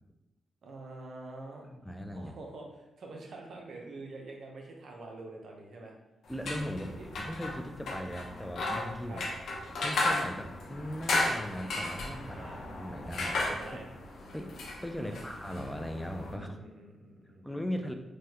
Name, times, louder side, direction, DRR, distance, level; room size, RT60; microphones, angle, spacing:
voice 1, 0.6-1.7 2.1-2.6 3.0-5.9 6.9-7.1 9.1-9.2 12.3-12.6 13.4-13.9 15.0-15.2 16.3-17.9, right 2 dB, 70° right, 0 dB, 0.6 m, -46 dB
voice 2, 1.7-2.3 6.3-9.2 9.8-13.8 14.3-14.5 14.8-16.6 17.4-17.9, equal, 5° left, 5 dB, 0.3 m, -39 dB
sound 1, 6.3-16.3, left 2 dB, 80° left, 0.6 m, -35 dB
3.2 x 2.2 x 2.8 m, 0.96 s
cardioid pair, 70°, 0 cm